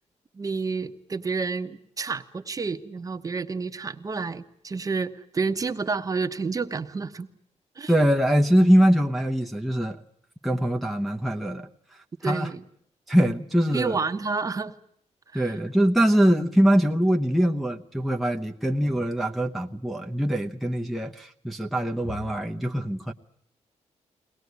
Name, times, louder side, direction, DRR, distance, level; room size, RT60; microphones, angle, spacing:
voice 1, 0.3-7.3 7.8-7.9 12.2-12.6 13.7-14.7 15.3-15.5, right 4 dB, 30° right, 1.1 m, -29 dB
voice 2, 7.9-10.0 10.4-11.7 12.2-12.5 13.1-14.0 15.3-23.1, equal, ahead, 0.9 m, -23 dB
22.5 x 19.0 x 9.5 m
wide cardioid pair, 140°, 12 cm